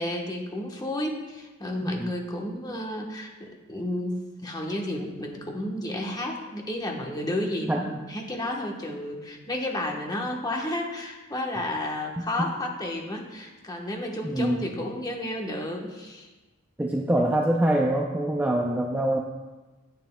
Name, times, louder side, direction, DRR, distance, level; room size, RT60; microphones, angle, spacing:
voice 1, 0.0-16.3, left 1 dB, 20° left, 0 dB, 1.1 m, -32 dB
voice 2, 7.7-8.0 14.2-14.7 16.8-19.2, right 1 dB, 10° right, 0 dB, 0.5 m, -25 dB
10.5 x 9.1 x 2.3 m, 1.2 s
head